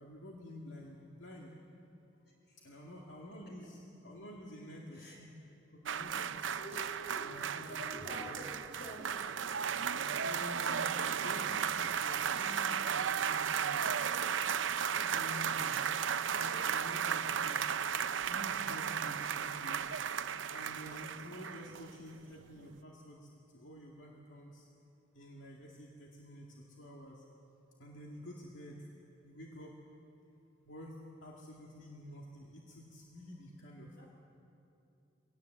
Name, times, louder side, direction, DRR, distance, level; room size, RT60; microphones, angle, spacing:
voice 1, 0.0-1.5 2.6-5.3 5.8-6.5 7.2-7.8 8.1-8.4 9.8-14.0 14.9-16.0 16.4-17.7 18.2-19.9 20.5-24.7 25.1-27.2 27.8-28.9 29.2-29.8 30.6-34.1, left 1 dB, 85° left, -2 dB, 2.2 m, -49 dB
voice 2, 2.5-2.8 4.9-5.2 6.6-7.2 7.7-9.1 12.4-12.5 34.0-34.1, equal, 60° left, -1 dB, 6.2 m, -47 dB
sound 1, 5.9-22.1 22.4-22.6, right 7 dB, 80° right, 0.6 m, -35 dB
23.5 x 18.0 x 8.0 m, 2.8 s
head